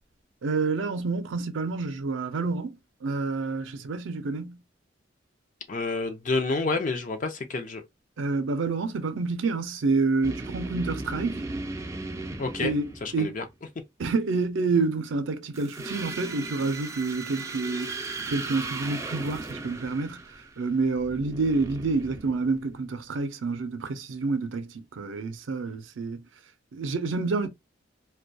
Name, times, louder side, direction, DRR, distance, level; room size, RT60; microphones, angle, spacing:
voice 1, 0.4-4.6 8.2-11.5 12.6-13.4 14.0-18.0 18.3-20.2 20.6-26.3 26.7-27.5, right 3 dB, 80° right, 0.5 m, -28 dB
voice 2, 5.7-7.8 12.4-12.7 13.0-13.4, left 3 dB, 40° left, 0.5 m, -29 dB
sound 1, 10.2-13.5 15.5-22.9, right 3 dB, 15° right, 0.3 m, -37 dB
2.2 x 2.2 x 2.5 m
head